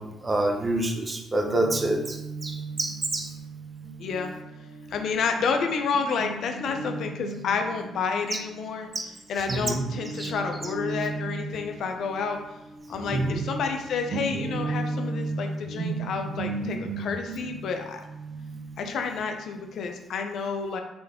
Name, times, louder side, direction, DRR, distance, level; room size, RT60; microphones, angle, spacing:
voice 1, 0.0-2.2 2.4-3.3 8.9-9.1 9.5-9.8 10.2-10.3 13.1-13.4, right 1 dB, 25° right, 2 dB, 0.7 m, -27 dB
Guitar, 1.5-9.1 9.5-19.9, right 3 dB, 70° right, 0.6 m, -36 dB
voice 2, 4.0-4.3 4.9-8.9 9.3-12.4 12.9-18.0 18.8-20.8, left 5 dB, 70° left, 5 dB, 0.6 m, -30 dB
3.8 x 3.4 x 3.6 m, 0.97 s
cardioid pair, 90°, 0 cm